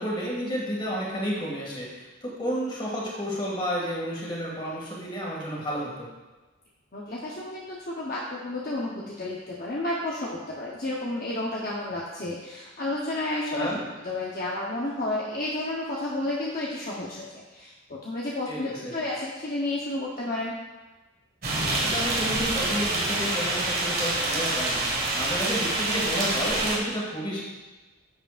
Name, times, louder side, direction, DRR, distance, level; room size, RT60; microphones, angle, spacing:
voice 1, 0.0-6.1 13.5-13.8 18.5-18.9 21.7-27.4, equal, 25° left, -4 dB, 2.1 m, -31 dB
voice 2, 6.9-20.5, left 2 dB, 45° left, -5 dB, 0.9 m, -31 dB
sound 1, 21.4-26.8, right 2 dB, 45° right, 1.6 m, -26 dB
10.5 x 7.8 x 2.5 m, 1.2 s
head